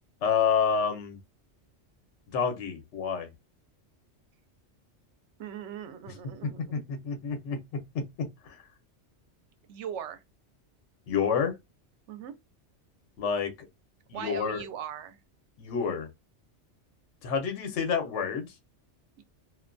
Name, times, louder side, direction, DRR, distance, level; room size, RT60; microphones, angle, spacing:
voice 1, 0.2-1.2 2.3-3.3 6.7-6.8 7.0-7.6 11.1-11.5 13.2-13.5 14.1-14.6 15.6-16.1 17.2-18.5, left 6 dB, 75° left, 1.0 m, -28 dB
voice 2, 5.4-6.8 9.7-10.2 12.1-12.3 14.1-15.2 19.2-19.3, right 9 dB, 75° right, 0.9 m, -40 dB
2.5 x 2.2 x 2.5 m
omnidirectional pair, 1.2 m